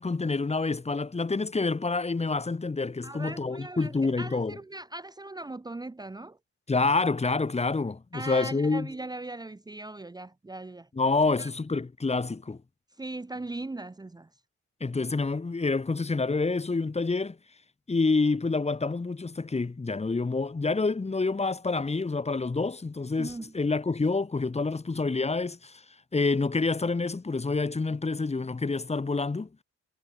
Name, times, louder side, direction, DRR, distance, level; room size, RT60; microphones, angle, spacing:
voice 1, 0.0-4.6 6.7-8.9 11.0-12.6 14.8-17.4 17.9-25.8 26.1-29.5, left 3 dB, 20° left, 1.9 m, -27 dB
voice 2, 3.0-6.4 8.1-10.9 11.4-11.5 13.0-14.3 23.2-23.5, right 2 dB, 15° right, 1.1 m, -39 dB
cardioid pair, 90°, 30 cm